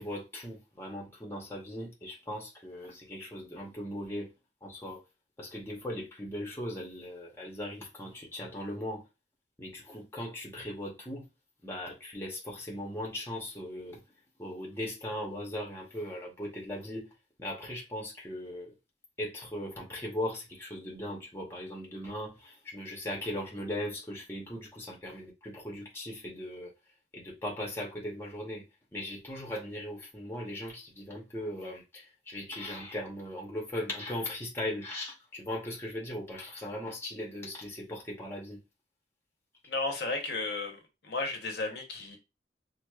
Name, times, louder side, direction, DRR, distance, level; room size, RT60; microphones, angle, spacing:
voice 1, 0.0-4.3 4.6-5.0 5.4-9.0 9.6-11.3 11.6-14.0 14.4-17.1 17.4-18.7 19.2-26.7 27.1-28.7 28.9-38.6, left 1 dB, 15° left, 0.7 m, -38 dB
voice 2, 39.7-42.2, left 3 dB, 60° left, 0.7 m, -34 dB
4.5 x 2.0 x 2.2 m
head